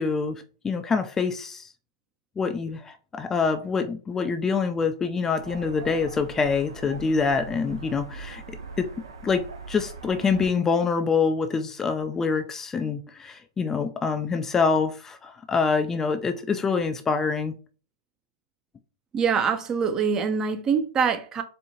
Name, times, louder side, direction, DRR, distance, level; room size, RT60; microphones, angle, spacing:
voice 1, 0.0-1.7 2.4-8.9 9.2-17.6, left 5 dB, 20° left, 0.4 m, -26 dB
sound 1, 5.4-10.5, right 4 dB, 80° right, 0.8 m, -41 dB
voice 2, 19.1-21.4, right 6 dB, 25° right, 0.6 m, -24 dB
4.3 x 2.6 x 2.8 m
hypercardioid pair, 110°, 2 cm